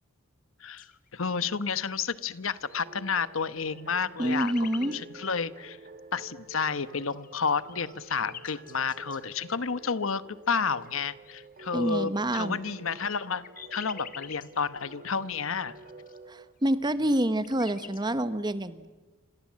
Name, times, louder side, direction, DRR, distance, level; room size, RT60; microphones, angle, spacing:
sound 1, 0.7-1.4 1.6-2.9 3.3-5.0 6.6-9.7 10.4-11.4 12.2-16.2 16.6-16.7 16.9-18.1, left 8 dB, 40° left, 1.4 m, -48 dB
voice 1, 1.1-5.8 6.1-13.4 13.7-15.7, left 5 dB, 75° left, 14 dB, 1.1 m, -31 dB
sound 2, 2.6-16.5, right 2 dB, 45° right, 2.4 m, -50 dB
voice 2, 4.2-4.9 11.7-12.6 16.3-18.9, right 1 dB, 20° right, 12 dB, 1.0 m, -27 dB
27.5 x 26.5 x 7.5 m, 1.3 s
head